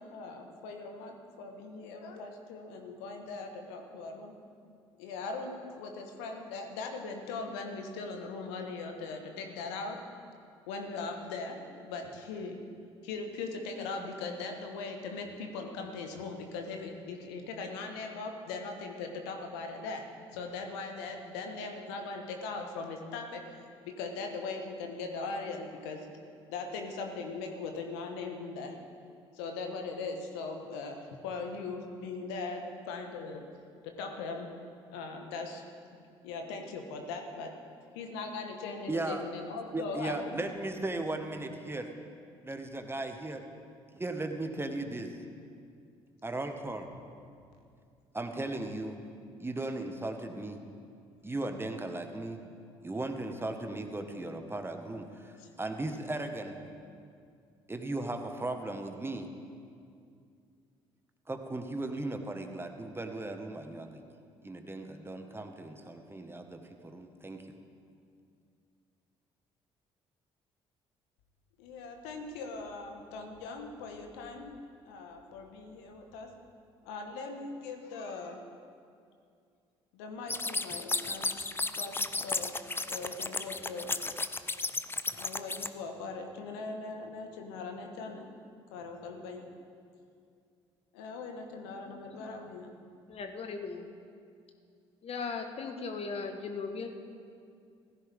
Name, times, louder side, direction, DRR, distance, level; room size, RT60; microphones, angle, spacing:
voice 1, 0.0-4.3 5.0-10.0 10.7-12.6 13.0-20.0 20.3-23.4 23.8-26.1 26.5-28.7 29.3-33.4 34.0-34.5 34.9-35.6 36.2-37.5 37.9-40.4 41.4-41.5 44.5-44.6 47.3-47.4 49.2-49.3 52.4-52.6 55.4-55.5 71.6-74.5 74.8-76.3 76.8-78.4 79.9-81.5 81.8-82.5 82.9-83.9 85.1-88.3 88.7-89.5 90.9-92.7, left 4 dB, 75° left, 4 dB, 1.4 m, -40 dB
voice 2, 38.9-39.3 39.7-41.9 42.4-43.4 43.9-45.1 46.2-46.9 48.1-49.0 49.4-50.6 51.2-52.4 52.8-56.6 57.7-59.3 61.3-64.0 64.4-67.5, right 2 dB, 15° right, 5 dB, 1.5 m, -37 dB
sound 1, 80.3-85.7, left 3 dB, 15° left, 0.7 m, -33 dB
voice 3, 93.1-93.9 95.0-96.9, left 4 dB, 45° left, 6 dB, 1.4 m, -38 dB
16.5 x 15.0 x 3.6 m, 2.4 s
figure-of-eight pair, 50°, 14 cm